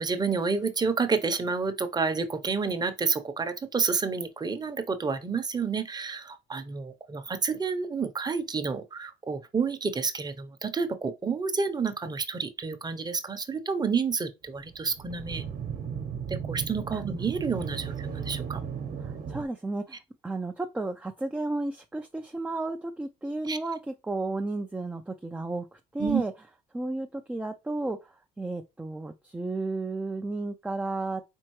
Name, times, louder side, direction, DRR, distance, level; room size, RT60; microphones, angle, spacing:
voice 1, 0.0-15.4 16.3-18.6 23.5-23.6 26.0-26.2, right 5 dB, 20° right, 0.8 m, -29 dB
sound 1, 14.5-19.4, right 7 dB, 50° right, 1.0 m, -35 dB
voice 2, 19.0-20.0 20.2-25.6 25.9-26.3 26.7-31.2, right 2 dB, 5° right, 0.4 m, -33 dB
4.5 x 3.7 x 3.1 m
supercardioid pair, 90°, 18 cm